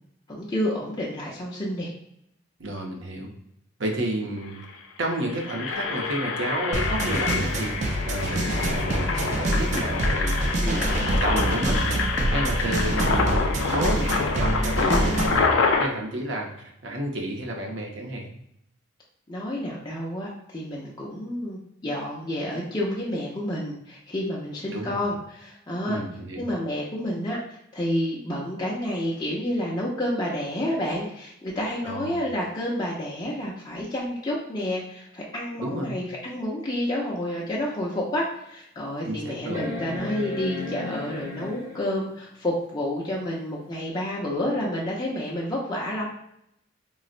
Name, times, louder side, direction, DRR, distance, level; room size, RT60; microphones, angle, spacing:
voice 1, 0.3-1.9 10.6-10.9 14.8-15.1 19.3-26.0 26.4-46.1, left 1 dB, 20° left, -4 dB, 0.5 m, -29 dB
voice 2, 2.6-3.3 3.8-4.6 5.0-16.5 16.8-18.3 24.7-25.0 25.8-26.5 31.8-32.2 35.6-36.0 39.0-39.7, right 1 dB, 70° right, 1 dB, 0.7 m, -31 dB
Engine, 4.1-4.2 4.5-4.7 5.2-15.9, left 4 dB, 85° left, 0.4 m, -27 dB
sound 1, 6.7-15.5, right 1 dB, 35° right, 0.3 m, -26 dB
sound 2, 37.4-37.5 38.1-38.2 39.5-42.0 43.7-43.8, left 2 dB, 15° right, 0.8 m, -34 dB
3.9 x 2.0 x 2.5 m, 0.76 s
head